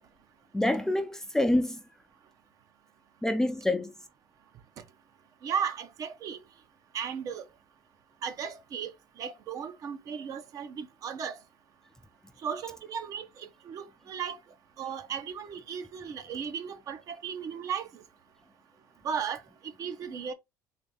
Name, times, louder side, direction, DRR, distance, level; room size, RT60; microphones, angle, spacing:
voice 1, 0.5-1.8 3.2-3.9, left 1 dB, 5° left, 0.4 m, -27 dB
voice 2, 5.4-6.4 6.9-7.4 8.2-11.4 12.4-14.4 14.8-18.0 19.0-20.3, right 7 dB, 50° right, 0.7 m, -36 dB
4.0 x 2.7 x 3.3 m
cardioid pair, 125°, 8 cm